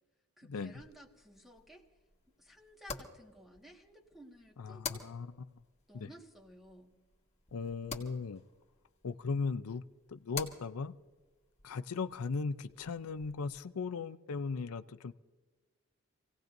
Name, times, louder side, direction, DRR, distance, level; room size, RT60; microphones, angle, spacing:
voice 1, 0.4-1.9 2.4-5.0 5.9-7.0, equal, ahead, 1 dB, 1.6 m, -55 dB
sound 1, 0.7-13.6, left 5 dB, 30° left, 1.8 m, -50 dB
voice 2, 4.6-5.6 5.9-6.1 7.5-8.4 9.0-9.8 10.1-10.9 11.6-15.1, left 4 dB, 85° left, 12 dB, 0.5 m, -37 dB
27.5 x 17.0 x 2.6 m, 1.3 s
head